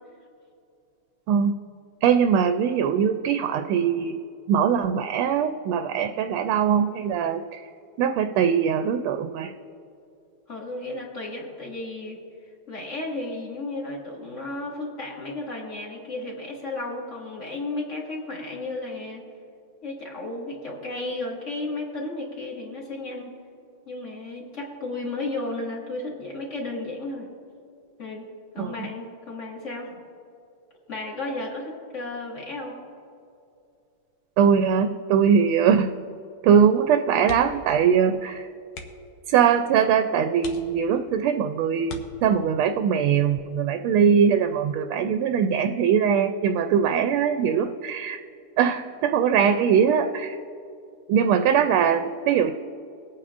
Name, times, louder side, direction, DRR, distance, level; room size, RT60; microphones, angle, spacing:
voice 1, 1.3-1.6 2.0-4.2 4.5-7.7 8.0-9.5 28.6-28.9 34.4-35.9 36.4-38.5 39.3-48.2 48.6-50.4 51.1-52.5, right 7 dB, 80° right, 7 dB, 1.4 m, -21 dB
voice 2, 10.5-12.2 12.7-19.2 19.8-23.3 23.9-27.3 28.0-28.2 28.5-29.9 30.9-32.8, left 2 dB, 35° left, -3 dB, 2.0 m, -33 dB
sound 1, 37.2-37.7 38.0-38.2 38.7-39.2 39.8-39.9 40.4-41.1 41.8-42.6 44.2-44.5 44.9-45.0, left 4 dB, 85° left, 1.9 m, -41 dB
24.0 x 8.5 x 2.5 m, 2.5 s
omnidirectional pair, 2.4 m